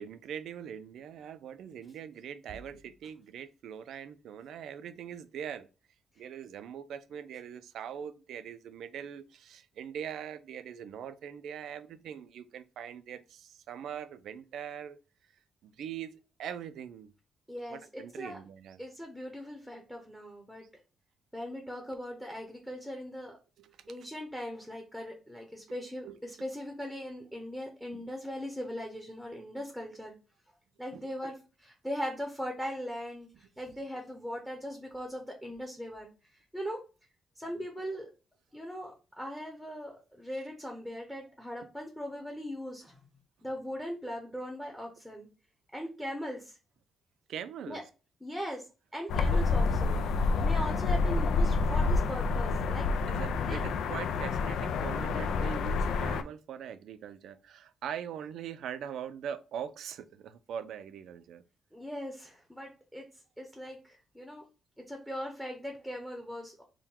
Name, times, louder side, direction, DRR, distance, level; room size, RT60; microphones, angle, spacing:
voice 1, 0.0-5.7 6.2-15.0 15.6-17.1 17.7-18.8 23.6-23.9 26.0-26.2 27.9-28.0 30.9-31.0 47.3-47.8 53.1-61.4, right 8 dB, 80° right, 12 dB, 0.4 m, -42 dB
voice 2, 17.5-18.4 18.8-20.6 21.3-23.4 23.9-30.2 30.8-36.8 37.4-38.1 38.5-43.0 43.4-45.3 45.7-46.6 47.6-47.8 48.2-48.7 48.9-50.0 50.4-52.9 53.5-53.6 61.7-63.0 63.4-64.4 64.9-66.6, equal, 5° left, 1 dB, 0.8 m, -39 dB
sound 1, 49.1-56.2, left 4 dB, 85° left, 0.3 m, -28 dB
3.7 x 2.2 x 4.3 m, 0.32 s
cardioid pair, 120°, 0 cm